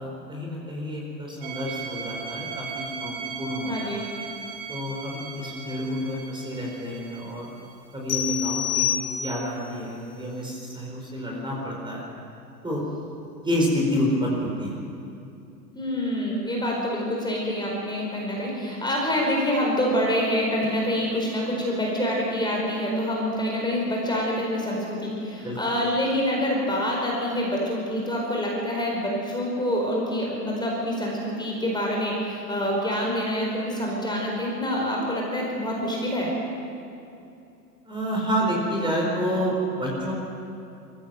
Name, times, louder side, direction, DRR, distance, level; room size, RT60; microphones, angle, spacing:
voice 1, 0.0-3.9 4.7-7.5 7.9-8.9 9.2-12.0 12.6-12.8 13.4-14.8 25.4-25.6 37.8-40.1, equal, 10° right, -2 dB, 4.8 m, -28 dB
sound 1, 1.4-8.0 10.4-10.5, right 6 dB, 55° right, 3.1 m, -38 dB
voice 2, 3.7-4.0 15.7-36.3, equal, 10° left, -3 dB, 4.7 m, -26 dB
sound 2, 8.1-9.6, left 10 dB, 35° left, 4.9 m, -27 dB
22.0 x 15.5 x 7.7 m, 2.6 s
hypercardioid pair, 105°, 50 cm